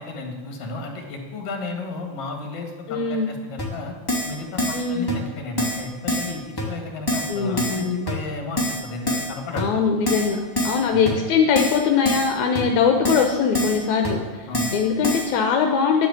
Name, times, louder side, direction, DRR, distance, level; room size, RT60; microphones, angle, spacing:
voice 1, 0.0-3.9 4.2-9.6 10.9-11.1 14.5-14.7, left 3 dB, 55° left, 3 dB, 2.9 m, -33 dB
voice 2, 2.9-3.3 4.7-5.1 7.3-8.1 9.5-10.4 10.6-16.1, left 6 dB, 80° left, 4 dB, 2.2 m, -21 dB
Keyboard (musical), 3.6-3.7 4.1-4.3 4.6-4.8 5.1-5.2 5.6-5.8 6.1-6.3 6.6-6.7 7.1-7.3 7.6-7.8 8.1-8.2 8.6-8.8 9.1-9.3 9.6-9.7 10.1-10.3 10.6-10.8 11.1-11.2 11.6-11.8 12.1-12.3 12.5-12.6 13.0-13.3 13.5-13.8 14.0-14.1 14.5-14.8 15.0-15.3, equal, 10° left, 1.9 m, -24 dB
10.5 x 8.5 x 8.0 m, 1.4 s
omnidirectional pair, 3.4 m